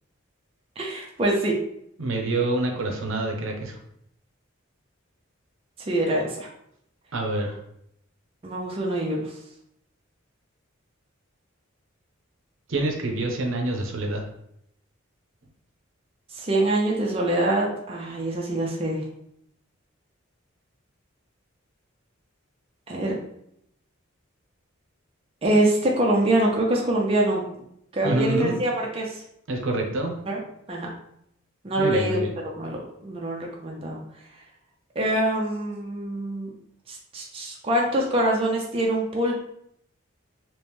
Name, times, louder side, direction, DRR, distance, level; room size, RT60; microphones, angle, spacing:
voice 1, 0.8-1.5 5.9-6.5 8.4-9.3 16.3-19.0 22.9-23.2 25.4-27.6 27.9-29.2 30.3-30.4 30.7-30.9 31.6-32.2 32.5-34.0 35.0-36.5 36.9-39.4, right 1 dB, 25° right, -1 dB, 0.5 m, -24 dB
voice 2, 2.0-3.8 7.1-7.6 12.7-14.2 28.0-28.6 29.5-30.1 31.8-32.4, right 2 dB, 70° right, 2 dB, 0.7 m, -26 dB
3.0 x 2.9 x 3.4 m, 0.74 s
head